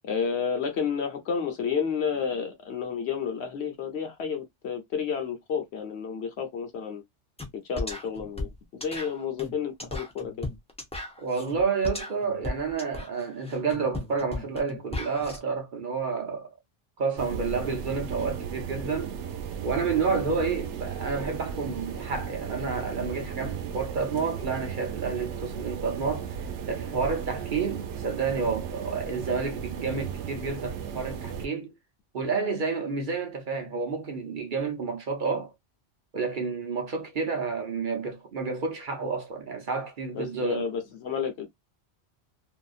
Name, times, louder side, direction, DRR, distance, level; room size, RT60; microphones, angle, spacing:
voice 1, 0.1-7.0 7.6-10.5 40.1-41.5, left 6 dB, 75° left, 1.1 m, -31 dB
sound 1, 7.4-7.5 7.8-15.4, left 2 dB, 5° left, 0.5 m, -36 dB
voice 2, 11.2-16.5 17.0-19.2 19.6-26.4 26.7-31.7 32.1-35.5 36.1-40.7, right 5 dB, 50° right, 0.8 m, -30 dB
sound 2, 17.2-31.5, right 7 dB, 90° right, 0.9 m, -35 dB
2.8 x 2.4 x 2.4 m
omnidirectional pair, 1.1 m